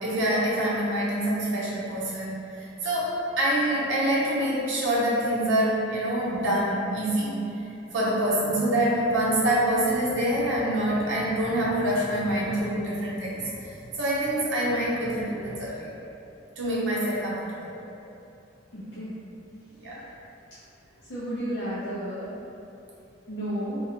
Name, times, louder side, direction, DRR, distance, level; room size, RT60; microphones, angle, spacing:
voice 1, 0.0-7.4 7.9-15.9 16.6-17.8 19.8-20.0, right 1 dB, 70° right, -6 dB, 0.7 m, -26 dB
voice 2, 18.7-19.1 21.1-22.4 23.3-23.8, equal, 60° left, -12 dB, 0.6 m, -32 dB
2.9 x 2.3 x 2.8 m, 2.8 s
head